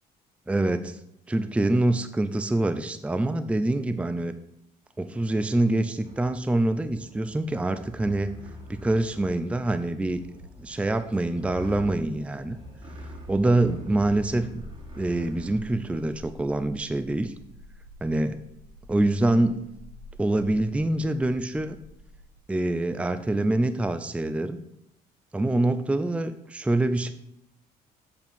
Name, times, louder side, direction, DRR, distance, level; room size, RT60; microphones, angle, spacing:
voice 1, 0.5-1.0 1.3-4.3 5.0-8.3 8.7-10.2 10.6-12.6 13.3-14.5 15.0-17.3 18.0-18.4 18.9-19.7 20.2-21.8 22.5-24.6 25.3-27.1, right 2 dB, 5° right, 10 dB, 0.5 m, -25 dB
sound 1, 6.0-15.6, equal, 30° right, 2.5 m, -44 dB
sound 2, 19.9-22.4, left 1 dB, 50° left, 1.3 m, -48 dB
8.1 x 4.5 x 6.9 m, 0.79 s
cardioid pair, 110°, 17 cm